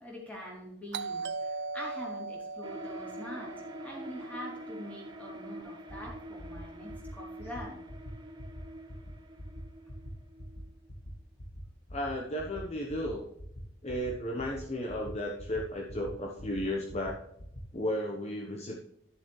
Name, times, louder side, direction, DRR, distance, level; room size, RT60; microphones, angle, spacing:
voice 1, 0.0-3.5 3.8-7.8, equal, 10° left, -4 dB, 3.4 m, -44 dB
Doorbell, 0.9-5.5, right 4 dB, 60° right, 0.5 m, -40 dB
sound 1, 2.6-10.9, right 1 dB, 25° right, 1.1 m, -46 dB
sound 2, 5.6-5.7 5.9-6.1 6.4-6.6 6.9-7.1 7.4-7.6 7.9-8.1 8.4-8.6 8.9-9.1 9.4-9.6 9.9-10.1 10.4-10.6 10.9-11.1 11.4-11.6 11.9-12.1 12.4-12.6 12.9-13.1 13.4-13.6 13.9-14.1 14.4-14.6 14.9-15.1 15.4-15.6 15.9-16.1 16.4-16.6 16.9-17.1 17.4-17.6, left 1 dB, 70° left, 1.8 m, -45 dB
voice 2, 11.9-13.3 13.8-17.2 17.7-18.8, equal, 35° left, -1 dB, 1.1 m, -34 dB
12.0 x 7.2 x 3.2 m, 0.79 s
head